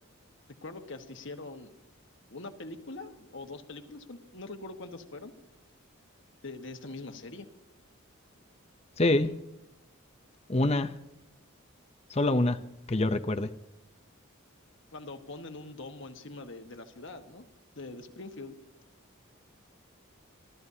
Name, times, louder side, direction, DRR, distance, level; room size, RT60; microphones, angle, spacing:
voice 1, 0.6-1.7 2.3-5.3 6.4-7.5 14.9-17.5 17.7-18.6, left 2 dB, 60° left, 6 dB, 1.5 m, -43 dB
voice 2, 9.0-9.3 10.5-10.9 12.1-12.6 12.9-13.5, left 2 dB, 30° left, 9 dB, 0.7 m, -25 dB
28.0 x 13.0 x 2.8 m, 0.84 s
head